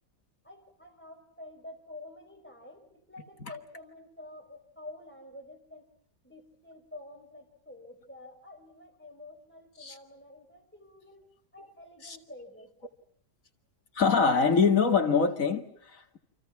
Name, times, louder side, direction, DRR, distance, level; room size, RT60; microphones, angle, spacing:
voice 1, 0.4-5.8 6.2-11.2 11.5-12.7, left 2 dB, 5° left, 5.1 m, -49 dB
voice 2, 13.9-16.2, left 5 dB, 50° left, 2.4 m, -24 dB
29.0 x 27.0 x 5.9 m
omnidirectional pair, 1.8 m